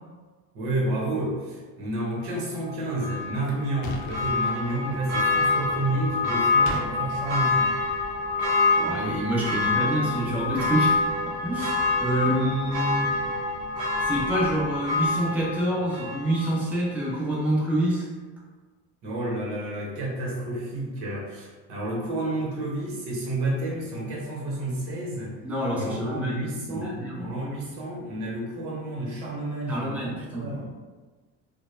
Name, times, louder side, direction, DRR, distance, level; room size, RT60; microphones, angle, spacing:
voice 1, 0.5-7.7 19.0-25.3 25.7-30.7, right 1 dB, 65° right, -3 dB, 1.0 m, -30 dB
Church bell, 3.0-16.6 17.0-17.1, left 3 dB, 45° right, 0.7 m, -26 dB
sound 1, 3.8-4.4 6.7-6.9, left 2 dB, 55° left, 0.6 m, -34 dB
voice 2, 8.8-13.1 14.0-18.1 25.4-27.3 29.7-30.6, right 1 dB, 5° right, -5 dB, 0.6 m, -27 dB
2.1 x 2.1 x 3.1 m, 1.3 s
supercardioid pair, 75°, 42 cm